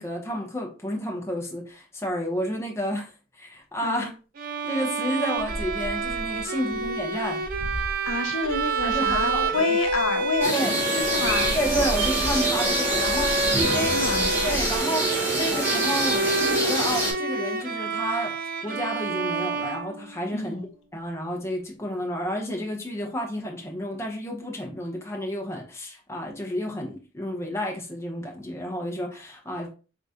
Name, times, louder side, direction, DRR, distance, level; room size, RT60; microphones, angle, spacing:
voice 1, 0.0-3.1 3.4-4.1 4.6-7.4 8.8-9.6 10.5-10.7 11.5-13.9 14.4-18.4 18.6-20.6 20.9-29.7, equal, 15° left, 0.8 m, -31 dB
Bowed string instrument, 4.4-20.3, right 4 dB, 45° right, 0.5 m, -28 dB
sound 1, 5.4-10.5 11.0-14.8, equal, 40° left, 1.2 m, -36 dB
voice 2, 8.0-11.5 13.7-14.3 20.3-20.7, left 4 dB, 80° left, 0.7 m, -28 dB
sound 2, 10.4-17.1, right 1 dB, 10° right, 2.0 m, -26 dB
3.9 x 3.5 x 2.8 m
head